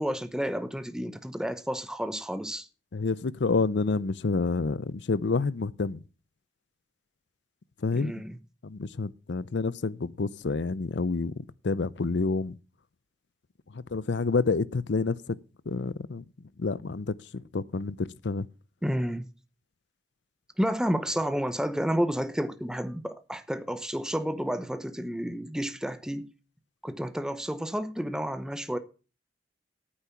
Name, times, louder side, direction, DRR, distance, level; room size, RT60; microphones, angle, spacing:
voice 1, 0.0-2.7 7.9-8.4 18.8-19.3 20.6-26.3 26.8-28.8, equal, 5° right, 0.8 m, -31 dB
voice 2, 2.9-6.0 7.8-8.1 8.6-11.3 11.6-12.6 13.7-15.2 15.7-16.2 16.6-18.5, left 4 dB, 70° left, 0.6 m, -28 dB
9.1 x 8.8 x 7.0 m
head